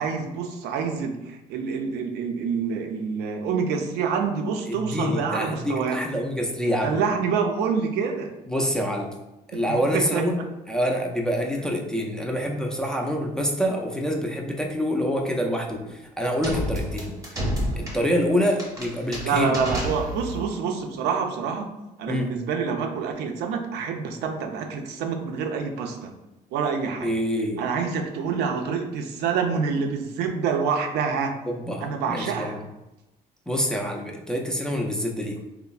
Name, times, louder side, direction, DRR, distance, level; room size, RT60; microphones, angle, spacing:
voice 1, 0.0-6.0 6.8-8.3 9.5-10.2 19.2-21.7 22.0-26.1 26.5-27.1 27.6-31.3 31.8-32.6, right 6 dB, 80° right, 3 dB, 0.4 m, -27 dB
voice 2, 4.7-7.0 8.5-9.1 9.5-10.3 10.7-17.2 17.8-19.6 22.1-22.3 27.0-27.6 31.5-32.6 33.5-35.4, equal, 5° left, 0 dB, 0.3 m, -26 dB
sound 1, 16.4-20.5, equal, 20° right, 0.8 m, -30 dB
3.2 x 2.0 x 2.3 m, 0.98 s
cardioid pair, 110°, 17 cm